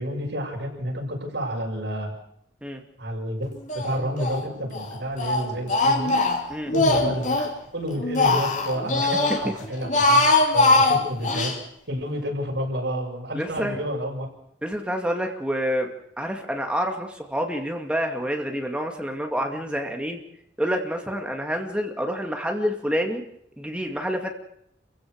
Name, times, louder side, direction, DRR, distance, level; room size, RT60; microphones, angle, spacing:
voice 1, 0.0-2.1 3.0-3.5 3.7-6.2 6.7-7.3 7.7-10.2 10.5-11.5 11.9-14.3, equal, 80° right, 0 dB, 7.0 m, -29 dB
Speech, 3.7-4.4 4.7-7.5 7.9-9.4 9.8-11.6, left 2 dB, 45° left, 2.9 m, -21 dB
voice 2, 13.3-13.8 14.6-15.9 16.2-20.2 20.6-23.2 23.6-24.3, equal, 5° right, 3 dB, 2.4 m, -28 dB
28.5 x 16.0 x 6.6 m, 0.72 s
head